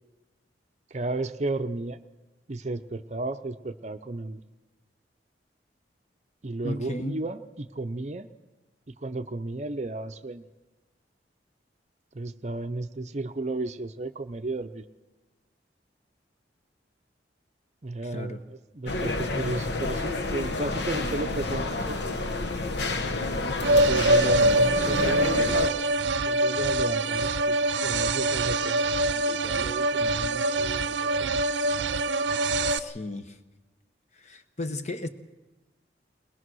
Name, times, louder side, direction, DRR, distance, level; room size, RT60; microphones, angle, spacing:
voice 1, 0.9-2.0 2.5-4.4 6.4-8.3 8.9-10.5 12.1-14.9 17.8-18.4 18.7-22.3 23.7-26.0 26.3-31.4, right 2 dB, 40° right, 9 dB, 0.6 m, -34 dB
voice 2, 6.6-7.2 18.0-18.4 32.7-33.4 34.1-35.1, left 1 dB, 40° left, 8 dB, 1.0 m, -34 dB
sound 1, 18.9-25.7, left 2 dB, 70° left, 1.1 m, -30 dB
sound 2, 23.6-32.8, right 2 dB, 80° right, 0.6 m, -24 dB
21.5 x 20.0 x 6.2 m, 1.2 s
head